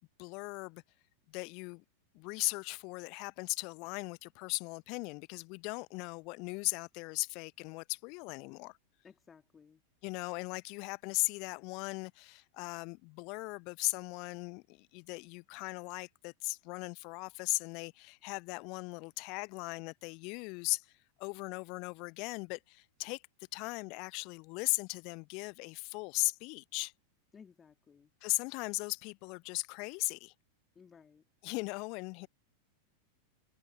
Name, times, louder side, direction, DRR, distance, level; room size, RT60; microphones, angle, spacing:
voice 1, 0.2-0.8 1.3-1.8 2.1-8.8 10.0-20.9 21.2-23.2 23.5-26.9 28.2-30.3 31.4-32.3, left 30 dB, 45° left, 0.9 m, -38 dB
voice 2, 9.0-9.8 27.3-28.1 30.7-31.3, left 6 dB, 20° left, 2.5 m, -58 dB
figure-of-eight pair, 90°, 0 cm